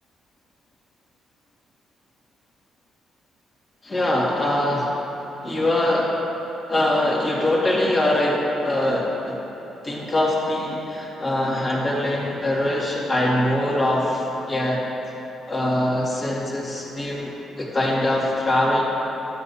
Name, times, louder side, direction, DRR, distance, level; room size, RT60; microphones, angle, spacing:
voice 1, 3.8-5.0 5.4-6.2 6.7-9.4 9.8-14.8 15.5-17.3 17.6-18.8, left 1 dB, 35° left, -5 dB, 2.1 m, -22 dB
12.0 x 8.0 x 2.8 m, 3.0 s
cardioid pair, 90°, 0 cm